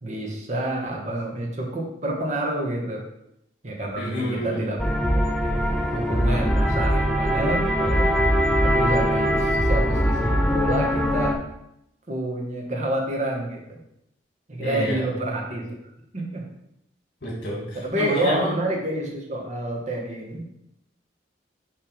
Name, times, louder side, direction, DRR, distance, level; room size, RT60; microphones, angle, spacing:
voice 1, 0.0-3.1 3.6-5.6 5.9-8.1 8.6-11.4 12.1-13.8 14.5-15.7 16.1-16.5 17.8-20.4, right 1 dB, 40° right, 0 dB, 1.2 m, -28 dB
voice 2, 4.0-4.6 14.6-15.0 17.2-18.5, equal, 75° left, -4 dB, 2.4 m, -28 dB
sound 1, 4.8-11.3, equal, 5° left, 0.6 m, -22 dB
5.9 x 3.4 x 5.0 m, 0.79 s
head